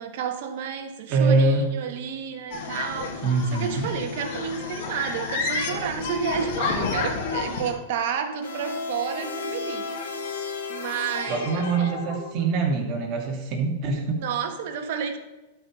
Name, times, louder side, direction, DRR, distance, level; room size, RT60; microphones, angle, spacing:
voice 1, 0.0-12.0 14.1-15.2, right 7 dB, 60° right, 5 dB, 1.6 m, -31 dB
voice 2, 1.1-1.7 3.2-3.9 11.3-14.2, right 3 dB, 40° right, 0 dB, 2.7 m, -24 dB
sound 1, 2.5-7.7, left 4 dB, 65° left, 2.4 m, -30 dB
sound 2, 8.4-12.8, left 4 dB, 80° left, 2.8 m, -34 dB
12.0 x 5.3 x 5.4 m, 1.1 s
hypercardioid pair, 125°, 0 cm